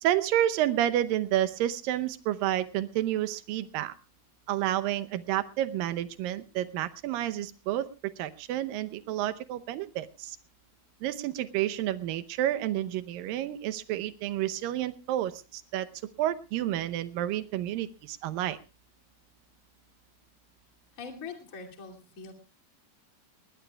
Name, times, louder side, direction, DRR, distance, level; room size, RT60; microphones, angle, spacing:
voice 1, 0.0-3.9 4.5-10.4 11.0-15.9 16.2-18.6, right 12 dB, 75° right, 11 dB, 2.4 m, -30 dB
voice 2, 20.9-22.3, left 5 dB, 25° left, 2 dB, 2.4 m, -42 dB
20.5 x 19.5 x 2.3 m, 0.30 s
omnidirectional pair, 4.4 m